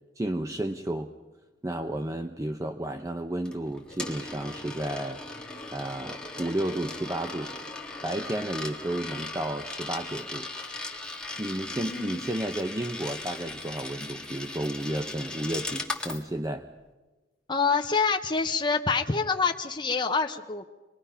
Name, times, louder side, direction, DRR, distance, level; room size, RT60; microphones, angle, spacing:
voice 1, 0.2-1.1 1.6-5.2 5.7-7.6 8.0-10.5 11.4-16.7, right 1 dB, 20° right, 6 dB, 0.7 m, -32 dB
Coin (dropping), 3.5-16.2, left 2 dB, 5° left, 1.7 m, -38 dB
voice 2, 11.9-12.3 17.5-20.6, left 4 dB, 25° left, 3 dB, 0.8 m, -26 dB
25.5 x 21.5 x 5.6 m, 1.2 s
head